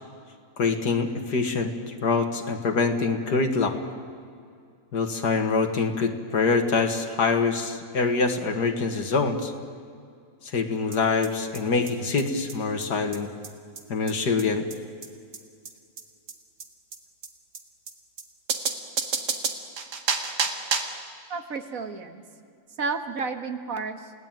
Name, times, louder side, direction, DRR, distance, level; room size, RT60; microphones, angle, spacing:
voice 1, 0.6-3.7 4.9-9.5 10.5-13.3 13.9-14.6, left 4 dB, 80° left, 5 dB, 2.4 m, -25 dB
sound 1, 10.9-11.0 11.2-11.3 11.5-11.6 11.9-12.0 12.2-12.3 12.5-12.6 12.8-12.9 13.1-13.2 13.4-13.5 13.8-13.9 14.1-14.2 14.4-14.5 14.7-14.8 15.0-15.1 15.3-15.4 15.7-15.8 16.0-16.1 16.3-16.4 16.6-16.7 16.9-17.0 17.2-17.3 17.5-17.6 17.9-18.0 18.2-18.3 18.5-21.0, right 5 dB, 85° right, 2.4 m, -29 dB
voice 2, 21.3-22.2 22.8-24.1, right 4 dB, 55° right, 8 dB, 2.0 m, -31 dB
29.5 x 18.0 x 9.2 m, 2.3 s
omnidirectional pair, 1.7 m